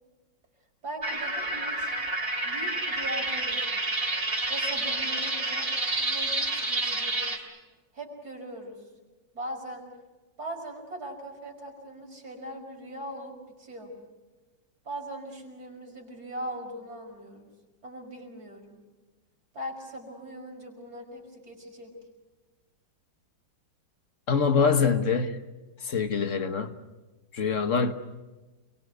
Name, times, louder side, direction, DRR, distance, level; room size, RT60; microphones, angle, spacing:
voice 1, 0.8-1.9 2.4-3.9 4.5-5.7 6.0-7.5 7.9-8.8 9.3-9.9 10.4-13.3 13.6-13.9 14.8-17.5 17.8-18.8 19.5-21.9, right 1 dB, 55° right, 5.9 m, -40 dB
sound 1, 1.0-7.4, right 2 dB, 30° right, 3.1 m, -29 dB
voice 2, 24.3-25.4 25.8-26.7 27.3-27.9, left 5 dB, 45° left, 1.5 m, -24 dB
29.0 x 23.0 x 8.0 m
omnidirectional pair, 2.0 m